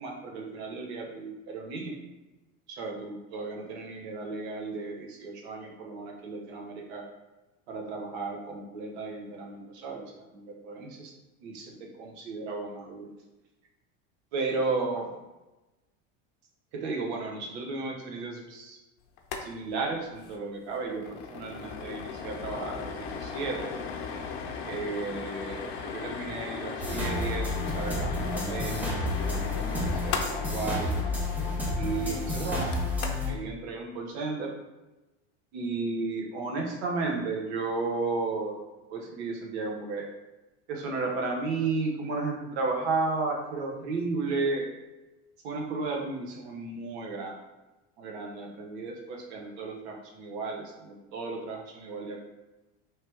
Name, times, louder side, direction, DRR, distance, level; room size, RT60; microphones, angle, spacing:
voice 1, 0.0-1.9 2.7-7.0 7.7-11.1 11.4-13.1 14.3-15.1 16.7-18.8 19.4-23.7 24.6-30.9 31.7-32.8 33.2-34.5 35.5-38.6 38.9-40.1 40.7-44.7 45.4-47.3 48.0-52.2, right 3 dB, 85° right, 0 dB, 1.1 m, -34 dB
sound 1, 19.2-19.5 19.7-19.8 20.1-20.3 20.7-33.4, left 5 dB, 75° left, 0.7 m, -37 dB
sound 2, 26.8-33.3, left 2 dB, 5° right, 0.5 m, -30 dB
3.3 x 3.0 x 4.5 m, 1.1 s
cardioid pair, 150°, 32 cm